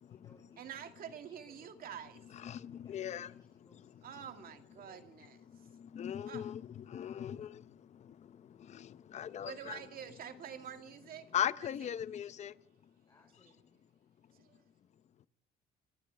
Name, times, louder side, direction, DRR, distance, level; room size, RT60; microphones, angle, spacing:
voice 1, 0.0-2.0 2.6-5.4 7.2-7.5 13.1-13.7, left 3 dB, 20° left, 4.4 m, -67 dB
voice 2, 0.6-2.2 4.0-5.4 6.3-6.5 9.4-11.3 11.8-11.9 14.3-14.6, right 9 dB, 60° right, 2.2 m, -47 dB
voice 3, 2.3-3.3 5.5-9.8 11.3-12.6 12.8-12.9 15.2-15.3, left 10 dB, 40° left, 0.7 m, -39 dB
26.5 x 15.5 x 3.4 m
cardioid pair, 110°, 17 cm